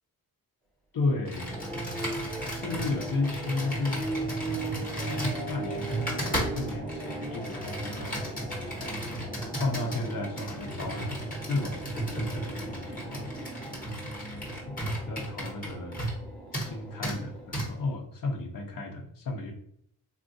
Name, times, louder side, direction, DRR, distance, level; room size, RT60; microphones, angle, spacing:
voice 1, 0.9-1.6 2.5-4.0 4.8-9.0 9.6-11.2 11.5-13.3 14.7-14.8 15.1-16.0 16.5-19.5, left 3 dB, 65° left, 2 dB, 0.8 m, -34 dB
Computer keyboard, 1.2-16.2 16.5-16.7 17.0-17.2 17.5-17.7, right 1 dB, 25° left, 1.0 m, -35 dB
sound 1, 1.3-17.9, right 2 dB, 5° left, 0.6 m, -39 dB
sound 2, 3.2-12.9, right 3 dB, 60° right, 0.6 m, -52 dB
3.6 x 2.4 x 2.6 m, 0.71 s
wide cardioid pair, 145°, 36 cm